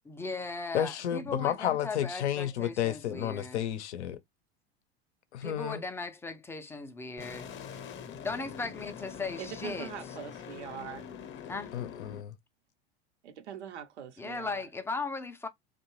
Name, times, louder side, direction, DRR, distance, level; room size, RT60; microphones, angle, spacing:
voice 1, 0.0-3.6 5.4-7.5 8.2-9.9 11.5-11.7 14.2-15.5, left 3 dB, 10° left, 0.3 m, -37 dB
voice 2, 0.7-4.2 5.3-5.8 11.7-12.3, left 11 dB, 85° left, 0.6 m, -31 dB
sound 1, 7.2-12.2, left 7 dB, 35° left, 0.7 m, -44 dB
voice 3, 9.4-11.2 13.2-14.7, right 9 dB, 85° right, 0.8 m, -43 dB
2.6 x 2.2 x 3.0 m
hypercardioid pair, 100°, 33 cm